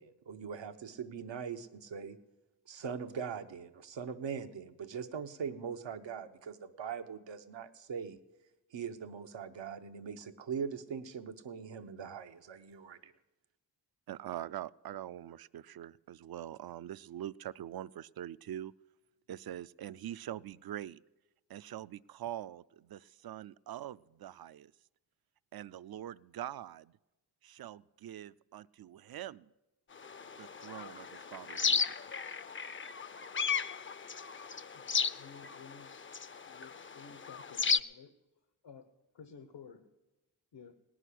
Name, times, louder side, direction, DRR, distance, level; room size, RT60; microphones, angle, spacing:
voice 1, 0.0-2.2 2.7-8.2 8.7-13.1, right 6 dB, 85° right, 7 dB, 1.0 m, -41 dB
voice 2, 14.1-18.7 19.3-21.0 21.5-24.7 25.5-26.9 27.4-29.5 30.4-31.9, right 12 dB, 60° right, 19 dB, 0.5 m, -44 dB
sound 1, 30.0-37.8, left 5 dB, 30° left, 0.5 m, -35 dB
voice 3, 34.7-36.0 36.5-38.1 38.6-38.9 39.1-39.9 40.5-40.7, left 6 dB, 75° left, 7 dB, 1.1 m, -53 dB
18.0 x 6.3 x 10.0 m, 1.0 s
cardioid pair, 55°, 43 cm